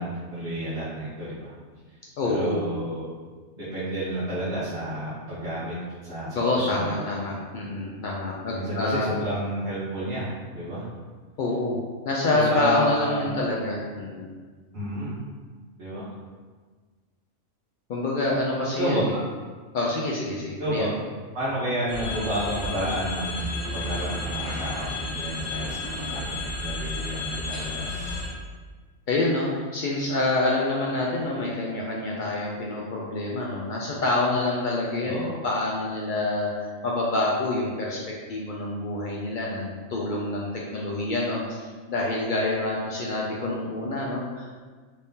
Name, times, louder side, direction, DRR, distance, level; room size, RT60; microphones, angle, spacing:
voice 1, 0.0-1.5 2.2-3.1 3.5-5.8 6.0-6.8 8.5-10.8 12.3-13.3 14.7-15.1 15.8-16.1 18.8-19.2 20.6-20.9 21.3-28.3 35.0-35.4, right 1 dB, 50° right, -12 dB, 1.0 m, -30 dB
voice 2, 2.2-2.6 6.3-9.3 11.4-11.8 12.0-14.3 17.9-19.1 19.7-20.9 29.1-35.2 35.4-38.0 38.3-44.6, left 2 dB, 85° left, -4 dB, 0.4 m, -27 dB
sound 1, 21.9-28.3, left 2 dB, 60° left, 0.9 m, -32 dB
3.5 x 3.1 x 2.7 m, 1.4 s
omnidirectional pair, 1.4 m